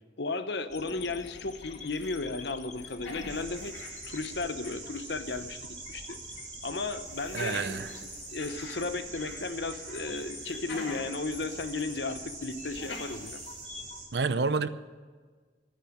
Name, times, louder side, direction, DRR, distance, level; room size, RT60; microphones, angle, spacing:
voice 1, 0.2-3.7 4.1-6.2 6.6-7.6 8.1-13.4, left 3 dB, 65° left, 1.0 m, -35 dB
sound 1, 0.7-14.0, left 5 dB, 40° left, 1.0 m, -49 dB
sound 2, 1.2-2.3 2.5-4.9 5.3-5.4 7.1-9.4 9.7-11.2 11.6-11.7 12.6-13.6, left 3 dB, 80° left, 2.5 m, -45 dB
sound 3, 3.3-14.1, right 4 dB, 40° right, 3.6 m, -44 dB
voice 2, 7.3-7.9 14.1-14.7, right 4 dB, 65° right, 0.7 m, -28 dB
12.5 x 9.9 x 8.7 m
head